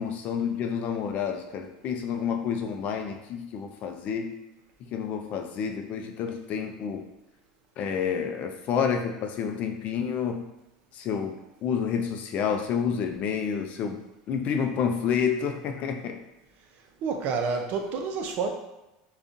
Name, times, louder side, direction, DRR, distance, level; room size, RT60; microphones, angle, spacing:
voice 1, 0.0-4.4 4.9-7.1 7.8-10.5 10.9-14.0 14.3-16.2, left 7 dB, 50° left, 5 dB, 0.4 m, -29 dB
voice 2, 17.0-18.5, right 5 dB, 55° right, 4 dB, 0.5 m, -28 dB
3.6 x 2.3 x 2.6 m, 0.99 s
supercardioid pair, 110°, 3 cm